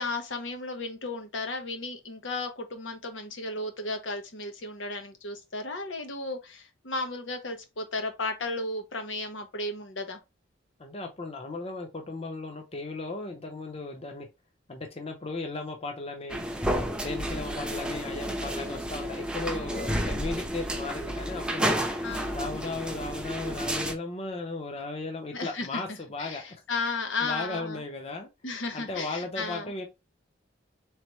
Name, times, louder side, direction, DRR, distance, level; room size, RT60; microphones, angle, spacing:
voice 1, 0.0-10.2 17.3-17.6 19.9-20.2 22.0-22.5 25.3-25.8 26.2-27.8 28.4-29.7, left 3 dB, 85° left, 1.1 m, -34 dB
voice 2, 10.8-14.3 14.7-16.4 17.0-21.9 22.3-26.4 27.2-28.3 28.7-29.9, left 3 dB, 30° left, 0.6 m, -36 dB
sound 1, 16.3-23.9, equal, 5° right, 0.5 m, -31 dB
4.0 x 3.3 x 3.0 m
head